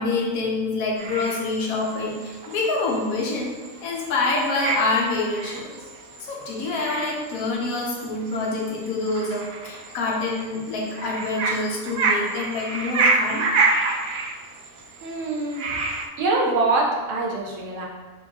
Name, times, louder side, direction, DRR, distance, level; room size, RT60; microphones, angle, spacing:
voice 1, 0.0-3.5 3.8-5.8 6.2-13.5, left 3 dB, 90° left, -2 dB, 1.2 m, -26 dB
sound 1, 1.0-16.1, right 3 dB, 90° right, 1.0 m, -28 dB
voice 2, 15.0-15.7 16.2-17.8, right 3 dB, 65° right, -2 dB, 1.2 m, -24 dB
4.4 x 3.6 x 2.8 m, 1.3 s
omnidirectional pair, 1.4 m